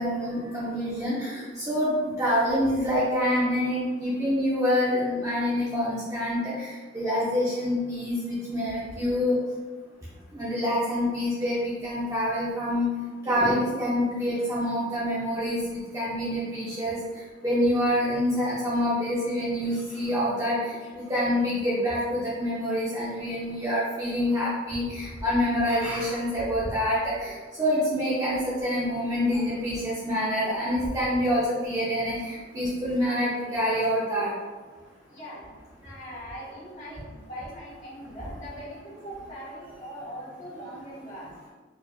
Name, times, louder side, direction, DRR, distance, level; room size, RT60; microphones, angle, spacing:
voice 1, 0.0-9.4 10.3-12.9 13.2-17.0 17.4-34.3, equal, 20° right, -8 dB, 0.6 m, -26 dB
voice 2, 35.1-35.5 35.8-41.3, equal, 40° left, -8 dB, 1.4 m, -41 dB
4.8 x 2.4 x 2.4 m, 1.3 s
head